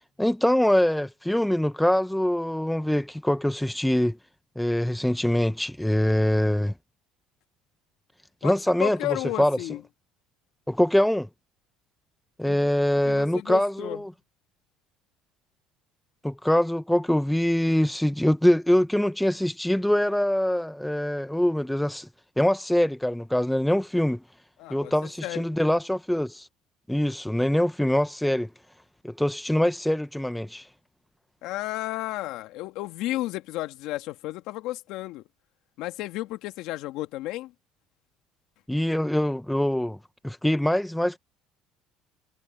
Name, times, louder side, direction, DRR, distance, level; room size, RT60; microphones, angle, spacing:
voice 1, 0.2-4.2 4.6-6.7 8.4-9.6 10.7-11.3 12.4-14.1 16.2-22.1 22.4-24.2 24.7-26.5 26.9-28.5 29.0-30.7 38.7-40.0 40.2-41.2, left 1 dB, 5° left, 0.9 m, -24 dB
voice 2, 8.4-9.8 12.4-12.6 13.0-14.0 24.6-24.9 25.2-25.4 31.4-35.2 35.8-37.5, left 17 dB, 70° left, 2.2 m, -33 dB
supercardioid pair, 110°, 0 cm